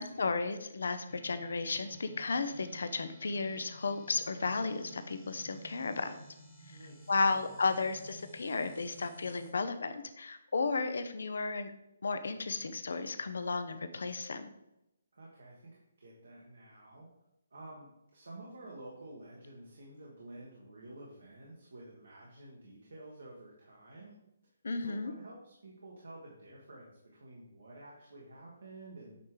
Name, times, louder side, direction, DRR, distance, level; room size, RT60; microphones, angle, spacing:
voice 1, 0.0-6.2 7.1-11.7 12.0-14.5 24.6-25.1, left 4 dB, 75° left, 10 dB, 0.6 m, -34 dB
sound 1, 1.1-9.5, equal, 25° left, 1.2 m, -54 dB
voice 2, 6.7-7.4 15.1-17.1 17.5-24.2 24.8-29.2, right 2 dB, 80° right, -3 dB, 1.5 m, -51 dB
8.2 x 3.3 x 3.8 m, 0.87 s
hypercardioid pair, 150°, 0 cm